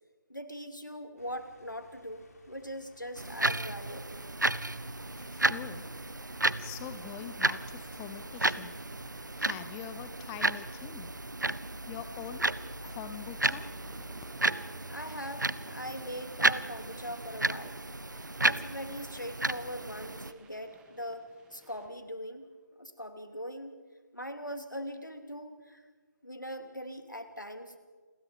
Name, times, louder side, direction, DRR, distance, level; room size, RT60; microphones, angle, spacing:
voice 1, 0.3-4.3 14.9-17.8 18.0-18.1 18.4-23.8 24.1-25.8 26.2-27.8, equal, 90° left, 7 dB, 3.1 m, -41 dB
sound 1, 1.2-9.5, left 2 dB, 55° left, 5.2 m, -60 dB
sound 2, 3.2-20.3, right 2 dB, 80° right, 0.9 m, -33 dB
voice 2, 4.5-6.1 6.6-11.1 11.9-12.5 12.8-13.7, left 11 dB, 10° left, 11 dB, 0.6 m, -45 dB
sound 3, 13.2-22.1, right 3 dB, 10° right, 2.0 m, -58 dB
29.0 x 22.5 x 5.3 m, 1.5 s
figure-of-eight pair, 150°, 10 cm